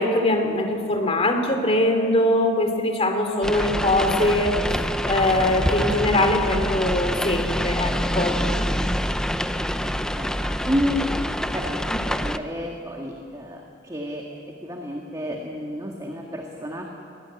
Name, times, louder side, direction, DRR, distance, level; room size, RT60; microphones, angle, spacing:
voice 1, 0.0-4.8 5.0-8.4, left 1 dB, 30° left, 5 dB, 2.9 m, -22 dB
sound 1, 3.4-12.4, equal, 5° left, 0.7 m, -26 dB
voice 2, 9.8-16.9, equal, 20° right, 1 dB, 1.9 m, -31 dB
22.0 x 19.0 x 9.8 m, 2.7 s
head